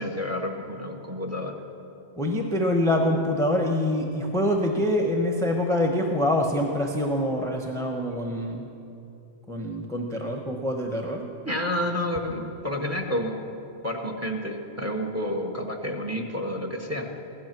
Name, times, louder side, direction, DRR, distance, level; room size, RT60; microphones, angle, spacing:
voice 1, 0.0-1.6 11.4-13.4 13.8-17.3, left 1 dB, 15° right, 3 dB, 1.1 m, -30 dB
voice 2, 2.2-8.7 9.5-11.3, left 1 dB, 5° left, 1 dB, 0.9 m, -25 dB
16.5 x 12.0 x 6.0 m, 2.7 s
omnidirectional pair, 1.2 m